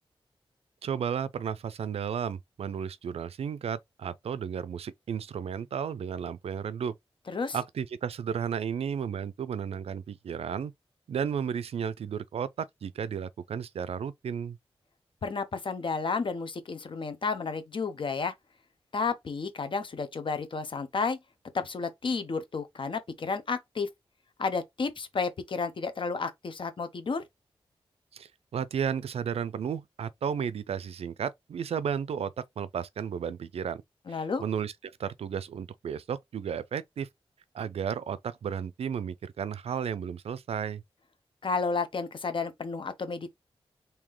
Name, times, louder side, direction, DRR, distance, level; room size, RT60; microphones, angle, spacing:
voice 1, 0.8-6.9 7.5-10.7 11.1-14.6 28.1-33.8 34.1-37.1 37.5-40.8, right 7 dB, 80° right, 0.4 m, -33 dB
voice 2, 15.2-18.3 18.9-21.2 21.5-23.9 24.4-27.2 34.1-34.4 41.4-43.3, left 4 dB, 55° left, 0.8 m, -31 dB
3.7 x 2.7 x 3.1 m
wide cardioid pair, 95°, 10 cm